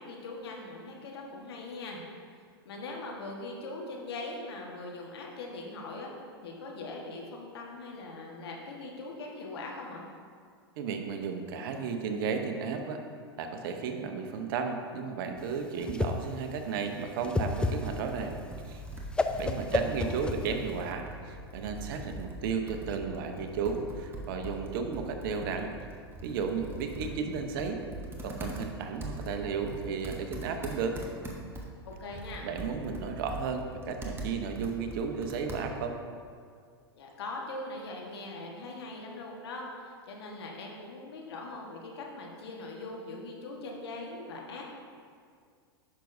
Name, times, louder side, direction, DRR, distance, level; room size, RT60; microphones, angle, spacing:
voice 1, 0.0-2.0 2.6-6.1 6.4-10.0 19.8-20.1 31.8-32.5 37.0-44.6, left 2 dB, 70° left, -1 dB, 1.4 m, -41 dB
voice 2, 10.8-13.0 13.4-18.4 18.6-18.8 19.4-25.7 26.2-27.8 28.2-31.0 32.4-36.0, right 5 dB, 60° right, 5 dB, 0.8 m, -34 dB
Whoosh swoosh swish, 15.4-20.9, left 3 dB, 5° left, 0.3 m, -32 dB
Computer keyboard, 17.5-36.0, right 1 dB, 15° right, 1.1 m, -42 dB
10.0 x 6.0 x 2.7 m, 2.2 s
hypercardioid pair, 100°, 13 cm